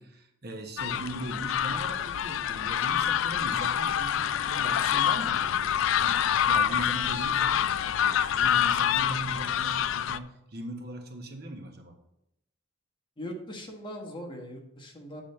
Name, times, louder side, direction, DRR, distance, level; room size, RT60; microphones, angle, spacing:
voice 1, 0.0-12.0, right 1 dB, 50° right, 4 dB, 1.1 m, -40 dB
sound 1, 0.8-10.2, left 9 dB, 70° left, 0.3 m, -26 dB
voice 2, 13.2-15.2, equal, 25° left, 1 dB, 1.2 m, -40 dB
8.7 x 4.2 x 6.6 m, 0.82 s
head